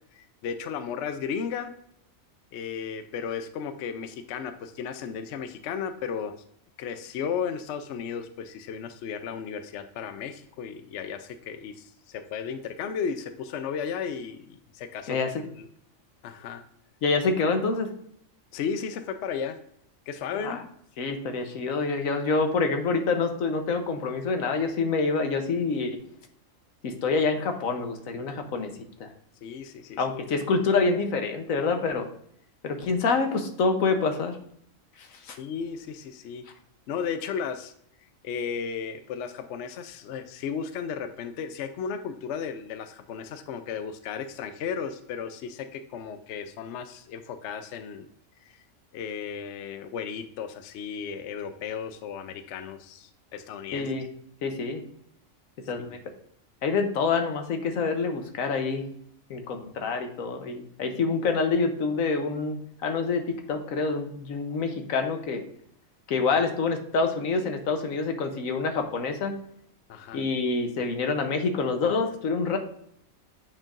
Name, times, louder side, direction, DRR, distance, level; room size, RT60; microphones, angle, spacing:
voice 1, 0.1-1.7 2.5-6.4 6.8-15.2 15.6-15.7 16.2-16.6 18.5-19.6 20.1-20.7 29.4-30.0 35.4-36.4 36.9-37.7 38.2-48.1 48.5-48.6 48.9-53.9 69.9-70.2, left 7 dB, 65° left, 9 dB, 0.8 m, -34 dB
voice 2, 15.1-15.4 17.0-17.9 20.4-20.6 21.0-26.0 26.8-28.7 29.0-29.1 30.0-32.1 32.6-34.4 35.3-35.4 53.7-54.1 54.4-54.8 55.7-56.0 56.6-58.8 59.3-65.4 66.1-69.4 70.1-72.6, left 4 dB, 85° left, 6 dB, 1.3 m, -27 dB
8.7 x 4.6 x 2.5 m, 0.68 s
omnidirectional pair, 1.4 m